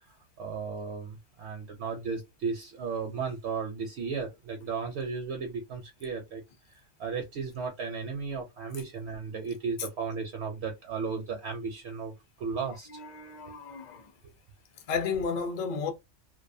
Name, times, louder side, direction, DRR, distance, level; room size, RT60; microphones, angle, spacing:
voice 1, 0.1-6.4 6.7-13.0, right 5 dB, 70° right, 0.8 m, -35 dB
voice 2, 12.9-14.1 14.9-15.9, left 5 dB, 50° left, 0.6 m, -32 dB
2.4 x 2.3 x 2.5 m
omnidirectional pair, 1.2 m